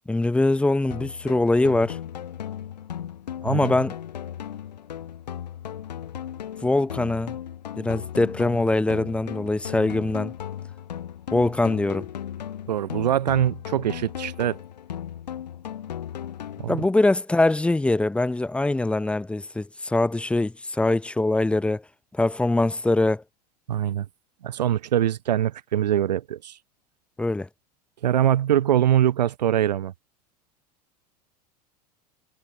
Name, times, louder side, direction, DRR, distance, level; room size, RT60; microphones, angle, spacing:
voice 1, 0.1-2.0 3.4-4.0 6.6-7.4 7.8-10.3 11.3-12.1 16.7-21.8 22.1-23.2 27.2-27.5, left 2 dB, 5° left, 0.4 m, -23 dB
sound 1, 0.9-16.9, left 10 dB, 85° left, 1.5 m, -36 dB
voice 2, 12.7-14.6 16.6-16.8 23.7-24.1 24.4-26.6 28.0-29.9, right 11 dB, 85° right, 0.9 m, -23 dB
hypercardioid pair, 90°, 21 cm